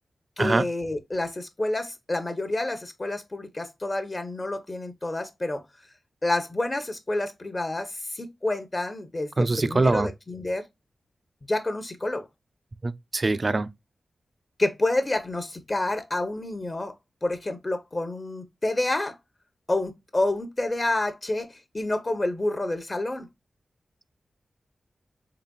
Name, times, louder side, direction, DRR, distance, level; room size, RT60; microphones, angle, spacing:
voice 1, 0.4-5.6 6.2-10.6 11.5-12.3 14.6-16.9 17.2-19.2 19.7-23.3, left 2 dB, 35° left, 0.8 m, -28 dB
voice 2, 9.4-10.1 12.8-13.7, right 2 dB, 40° right, 0.4 m, -23 dB
4.0 x 3.4 x 2.2 m
wide cardioid pair, 75°, 0 cm